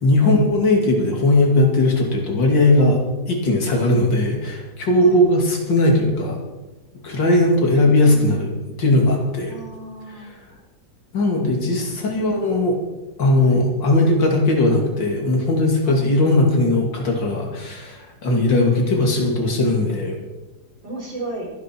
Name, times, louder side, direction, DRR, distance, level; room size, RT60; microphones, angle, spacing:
voice 1, 0.0-6.4 7.0-8.5 8.8-9.5 11.1-12.8 13.2-20.2, left 2 dB, 80° left, 1 dB, 3.3 m, -18 dB
voice 2, 3.8-4.1 5.0-5.3 7.1-8.5 9.5-10.3 11.9-12.7 13.4-13.7 15.8-16.1 18.6-19.7 20.8-21.5, right 2 dB, 85° right, -2 dB, 5.3 m, -37 dB
23.5 x 10.0 x 4.6 m, 1.1 s
omnidirectional pair, 1.9 m